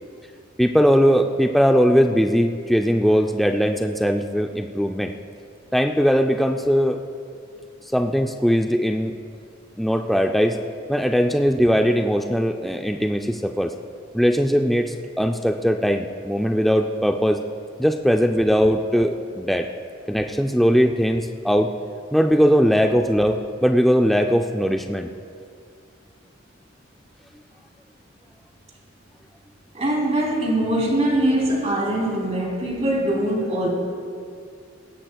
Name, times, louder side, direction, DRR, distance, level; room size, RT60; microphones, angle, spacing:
voice 1, 0.6-5.1 5.7-7.0 7.9-9.1 9.8-10.6 10.9-13.7 14.1-17.4 17.8-19.7 20.1-21.7 22.1-25.1, equal, ahead, 4 dB, 0.4 m, -20 dB
voice 2, 29.7-33.7, right 1 dB, 35° right, -2 dB, 3.1 m, -22 dB
20.0 x 16.5 x 2.3 m, 2.4 s
head